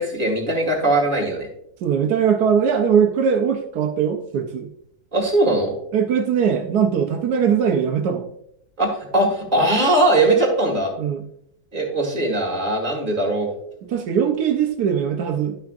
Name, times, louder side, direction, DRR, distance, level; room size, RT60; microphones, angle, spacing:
voice 1, 0.0-1.5 5.1-5.7 8.8-10.9 11.7-13.5, right 2 dB, 30° right, 0 dB, 2.2 m, -20 dB
voice 2, 1.8-4.7 5.9-8.3 11.0-11.2 13.9-15.6, right 7 dB, 90° right, 4 dB, 1.3 m, -20 dB
11.5 x 5.9 x 2.5 m, 0.73 s
omnidirectional pair, 1.7 m